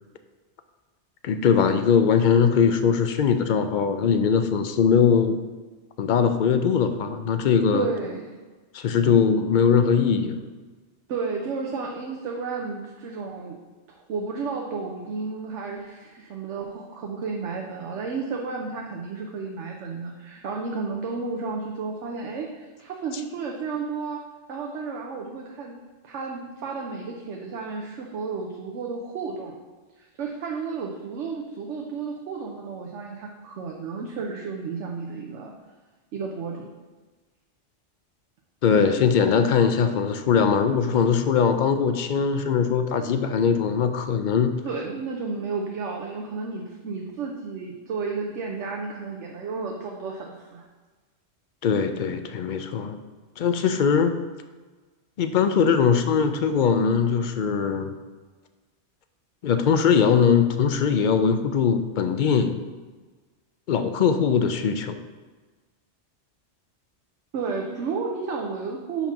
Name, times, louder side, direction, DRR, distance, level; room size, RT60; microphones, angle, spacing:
voice 1, 1.2-5.4 6.0-7.9 8.7-10.4 38.6-44.6 51.6-53.0 53.4-54.2 55.2-58.0 59.4-62.6 63.7-65.0, left 6 dB, 55° left, 8 dB, 0.5 m, -21 dB
voice 2, 7.7-8.4 9.0-9.1 11.1-13.6 13.9-24.2 24.5-25.7 26.0-29.6 30.0-35.5 36.1-36.7 44.6-50.6 55.7-55.8 67.3-69.1, right 4 dB, 85° right, 0 dB, 1.0 m, -32 dB
5.6 x 4.3 x 5.9 m, 1.3 s
omnidirectional pair, 1.2 m